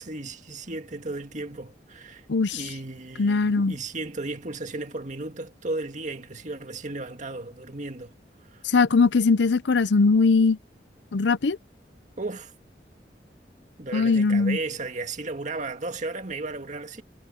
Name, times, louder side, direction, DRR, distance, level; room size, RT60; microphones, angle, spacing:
voice 1, 0.0-2.3 2.5-8.1 8.5-8.6 12.2-12.5 13.8-17.0, right 2 dB, 45° right, 2.0 m, -34 dB
voice 2, 2.3-2.6 3.2-3.7 8.6-10.6 11.1-11.6 13.9-14.6, left 4 dB, 75° left, 0.6 m, -20 dB
head